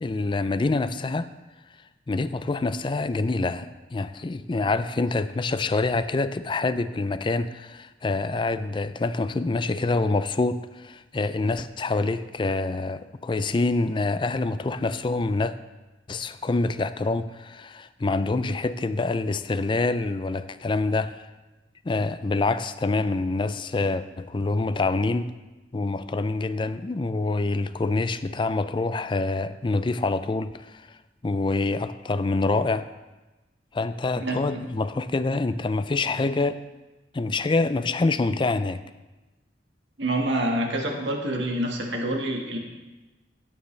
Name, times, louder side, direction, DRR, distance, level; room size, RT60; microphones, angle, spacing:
voice 1, 0.0-1.3 2.1-15.5 16.1-21.3 21.8-25.3 25.7-31.0 31.2-32.9 33.7-36.6 37.1-38.8, left 3 dB, 25° left, 12 dB, 0.4 m, -26 dB
voice 2, 34.2-34.6 40.0-42.6, right 1 dB, 85° right, 1 dB, 1.7 m, -27 dB
14.5 x 9.2 x 3.3 m, 1.1 s
head